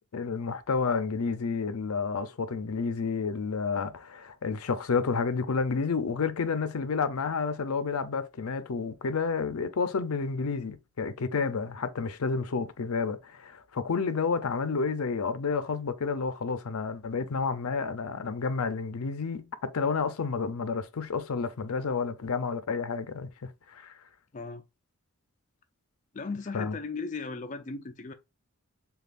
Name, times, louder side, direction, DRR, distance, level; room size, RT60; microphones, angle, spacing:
voice 1, 0.1-23.3 23.7-23.9 26.5-26.7, left 5 dB, 85° left, 0.6 m, -30 dB
voice 2, 26.1-28.1, left 4 dB, 35° left, 0.4 m, -36 dB
6.7 x 2.4 x 2.5 m
head